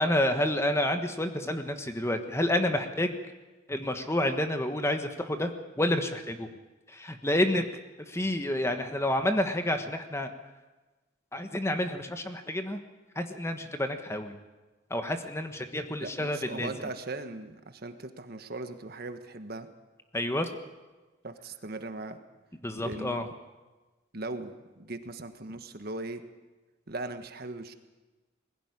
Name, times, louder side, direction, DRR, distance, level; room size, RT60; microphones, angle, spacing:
voice 1, 0.0-3.2 3.7-5.5 5.8-6.5 6.9-7.6 8.1-10.3 11.3-12.8 13.1-14.4 14.9-16.7 20.1-20.5 22.6-23.3, left 1 dB, 15° left, 7 dB, 1.4 m, -29 dB
voice 2, 16.0-19.7 21.2-22.2 22.8-23.3 24.1-26.2 26.9-27.7, right 2 dB, 50° right, 8 dB, 1.4 m, -39 dB
20.5 x 16.5 x 9.8 m, 1.2 s
head